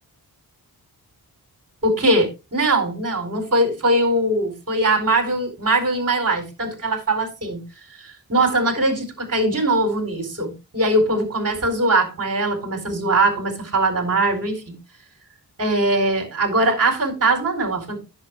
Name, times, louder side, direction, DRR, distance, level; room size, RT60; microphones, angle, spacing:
voice 1, 1.8-7.6 8.0-14.8 15.6-18.0, right 2 dB, 40° right, 2 dB, 4.2 m, -21 dB
10.5 x 7.2 x 3.5 m, 0.27 s
wide cardioid pair, 100°, 39 cm